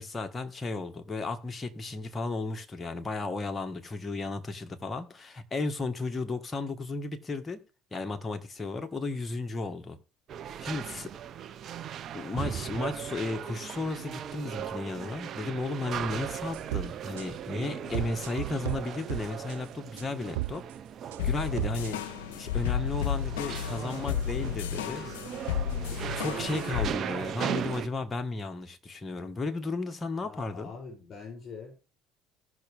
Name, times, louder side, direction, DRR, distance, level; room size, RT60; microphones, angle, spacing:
voice 1, 0.0-7.6 7.9-10.0 10.6-11.1 12.1-20.6 21.2-22.0 22.3-25.1 26.1-30.7, left 3 dB, 25° left, 1.8 m, -34 dB
sound 1, 10.3-27.9, right 9 dB, 50° right, 1.1 m, -38 dB
sound 2, 16.5-16.9 17.2-17.3 17.9-18.8 19.1-19.5 20.0-20.1 20.3-20.7 21.1-21.9, right 18 dB, 85° right, 0.4 m, -33 dB
sound 3, 21.2-26.9, left 9 dB, 80° left, 0.6 m, -32 dB
voice 2, 30.2-31.9, left 5 dB, 50° left, 7.4 m, -45 dB
18.0 x 6.1 x 3.6 m
hypercardioid pair, 65°, 0 cm